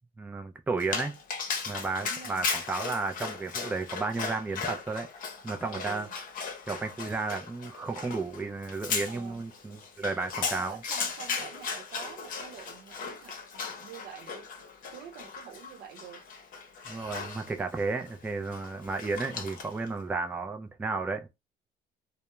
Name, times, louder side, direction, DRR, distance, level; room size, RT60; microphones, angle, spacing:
voice 1, 0.2-1.1 1.7-5.1 5.4-6.1 6.7-10.8 16.9-21.3, right 3 dB, 10° right, 0.3 m, -33 dB
Dog, 0.8-19.9, left 5 dB, 55° left, 0.7 m, -37 dB
voice 2, 2.0-2.5 5.7-6.1 9.1-9.4 10.6-14.5 14.9-16.2, right 8 dB, 75° right, 0.7 m, -47 dB
2.2 x 2.0 x 3.0 m
cardioid pair, 110°, 17 cm